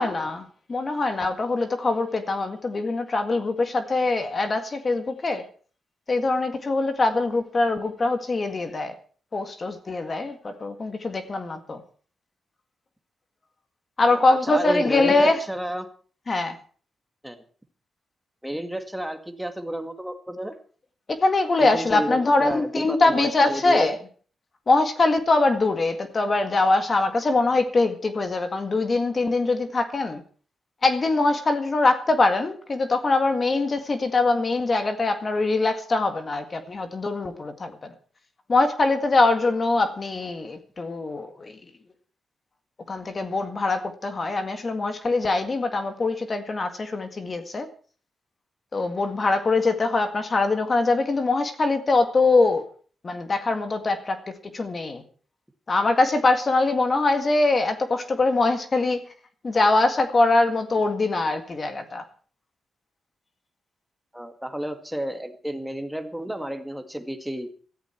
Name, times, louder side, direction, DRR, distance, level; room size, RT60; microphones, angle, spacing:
voice 1, 0.0-5.4 6.1-8.9 9.3-11.8 14.0-15.4 16.3-16.6 21.1-24.0 24.7-30.2 30.8-37.9 38.5-41.6 42.9-47.7 48.7-52.6 53.0-54.2 54.5-55.0 55.7-59.0 59.4-62.0, left 3 dB, 30° left, 8 dB, 1.9 m, -23 dB
voice 2, 14.0-15.9 17.2-17.4 18.4-20.5 21.6-23.8 64.1-67.5, right 1 dB, ahead, 7 dB, 1.9 m, -31 dB
17.0 x 14.0 x 4.5 m, 0.42 s
wide cardioid pair, 150°, 0 cm